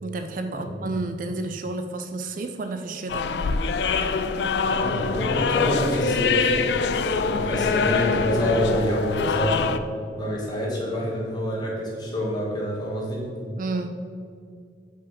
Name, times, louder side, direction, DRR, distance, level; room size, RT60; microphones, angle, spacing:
voice 1, 0.0-3.3 13.6-14.0, right 2 dB, 50° right, 7 dB, 0.4 m, -31 dB
sound 1, 3.1-9.8, left 4 dB, 70° left, 0.4 m, -24 dB
voice 2, 4.6-6.7 7.3-9.7 10.2-13.4, equal, 25° left, -4 dB, 1.8 m, -26 dB
5.5 x 5.0 x 6.5 m, 2.2 s
head